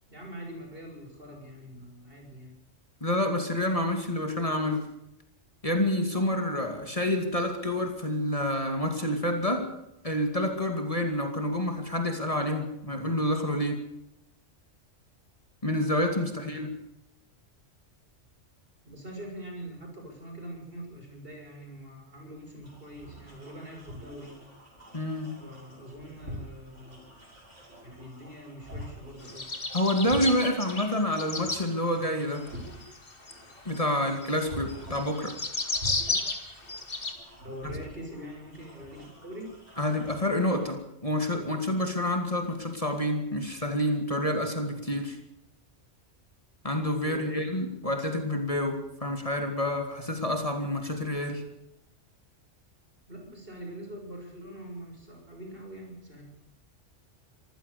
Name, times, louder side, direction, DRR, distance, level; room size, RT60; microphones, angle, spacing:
voice 1, 0.1-2.6 16.2-16.5 18.8-24.4 25.4-27.0 27.8-29.5 37.4-39.6 47.0-47.5 53.1-56.2, equal, 50° right, 2 dB, 6.7 m, -43 dB
voice 2, 3.0-4.9 5.6-9.7 10.0-13.8 15.6-16.7 24.9-25.4 29.7-32.5 33.7-35.4 37.6-37.7 39.8-45.2 46.6-51.4, left 1 dB, 30° left, 4 dB, 2.5 m, -28 dB
sound 1, 22.6-40.7, equal, 80° right, 6.9 m, -46 dB
sound 2, 29.2-31.6 32.4-37.1, left 3 dB, 50° left, 2.5 m, -33 dB
25.5 x 16.0 x 6.9 m, 0.84 s
omnidirectional pair, 1.2 m